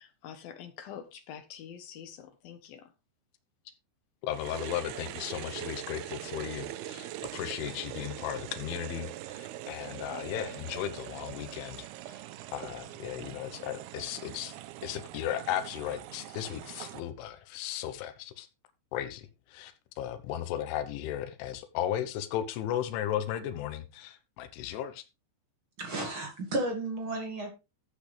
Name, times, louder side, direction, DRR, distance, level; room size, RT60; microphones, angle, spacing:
voice 1, 0.0-2.9, left 9 dB, 70° left, 2.4 m, -46 dB
voice 2, 4.2-12.2 12.5-14.5 14.8-18.5 18.9-19.7 20.0-25.0, left 11 dB, 90° left, 3.5 m, -36 dB
sound 1, 4.3-17.0, right 14 dB, 90° right, 2.3 m, -42 dB
voice 3, 25.8-27.5, right 2 dB, 40° right, 2.1 m, -33 dB
14.0 x 8.4 x 3.3 m
omnidirectional pair, 5.3 m